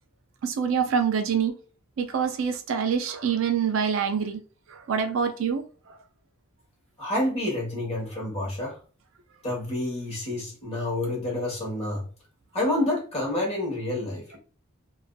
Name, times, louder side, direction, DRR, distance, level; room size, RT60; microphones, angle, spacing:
voice 1, 0.4-1.6 2.0-4.4 4.7-6.0, right 7 dB, 65° right, 0.4 m, -26 dB
voice 2, 7.0-8.8 9.4-12.0 12.5-14.4, left 1 dB, 30° left, 1.0 m, -28 dB
2.5 x 2.4 x 2.2 m
head